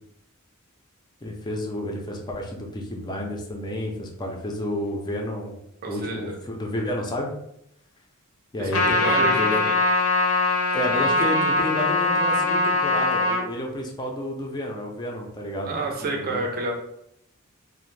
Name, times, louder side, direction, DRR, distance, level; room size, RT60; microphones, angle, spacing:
voice 1, 1.2-5.5 5.9-7.3 8.5-9.7 10.7-15.7 16.0-16.5, left 1 dB, 20° left, 0 dB, 0.4 m, -30 dB
voice 2, 5.8-6.4 8.6-9.8 15.6-16.7, right 2 dB, 45° right, 0 dB, 0.5 m, -29 dB
Trumpet, 8.7-13.4, left 2 dB, 80° left, 0.6 m, -22 dB
2.5 x 2.0 x 3.1 m, 0.76 s
head